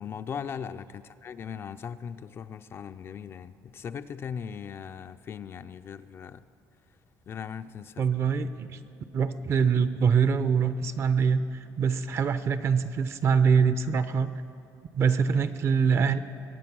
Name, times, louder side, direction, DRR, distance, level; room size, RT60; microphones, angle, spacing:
voice 1, 0.0-6.4 7.3-8.0, left 7 dB, 40° left, 11 dB, 0.4 m, -39 dB
voice 2, 8.0-8.8 9.1-14.3 14.9-16.2, right 6 dB, 40° right, 12 dB, 0.6 m, -24 dB
21.5 x 9.1 x 6.1 m, 2.7 s
cardioid pair, 145°, 7 cm